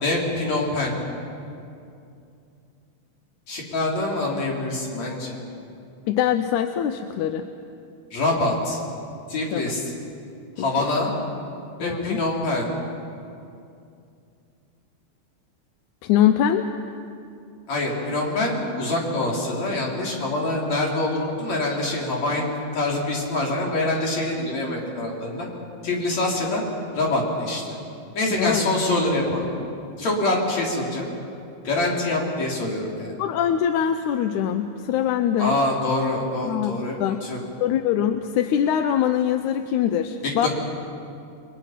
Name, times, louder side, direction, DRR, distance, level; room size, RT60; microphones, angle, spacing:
voice 1, 0.0-0.9 3.5-5.4 8.1-8.8 9.3-9.9 10.6-11.1 11.8-12.7 17.7-25.5 25.8-26.6 26.9-27.8 28.1-29.5 30.0-31.1 31.6-33.1 35.4-37.4 40.2-40.5, left 2 dB, 55° left, -2 dB, 5.0 m, -25 dB
voice 2, 6.1-7.4 9.5-9.6 11.8-12.2 16.0-16.7 28.4-28.6 33.2-35.6 36.5-36.7 37.0-37.2 37.6-40.5, left 10 dB, 75° left, 8 dB, 2.1 m, -23 dB
30.0 x 22.5 x 5.9 m, 2.5 s
omnidirectional pair, 3.7 m